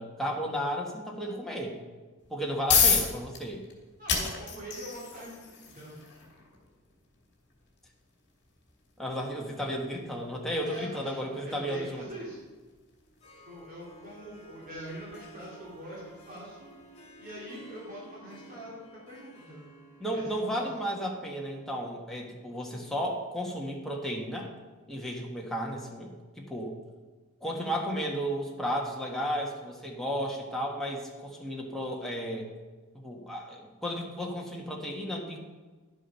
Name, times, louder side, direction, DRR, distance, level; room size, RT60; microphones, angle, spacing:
voice 1, 0.0-1.8 2.3-3.6 9.0-12.0 20.0-24.5 24.9-26.8 27.4-32.5 32.9-35.4, equal, ahead, -2 dB, 1.4 m, -33 dB
sound 1, 2.2-17.1, left 6 dB, 50° left, 2.4 m, -34 dB
voice 2, 4.0-6.0 10.6-12.4 13.4-16.7 17.2-19.7 20.1-20.7, equal, 40° right, -6 dB, 2.6 m, -44 dB
Harp, 13.0-21.9, right 1 dB, 25° left, 2.2 m, -53 dB
11.0 x 7.5 x 5.5 m, 1.3 s
head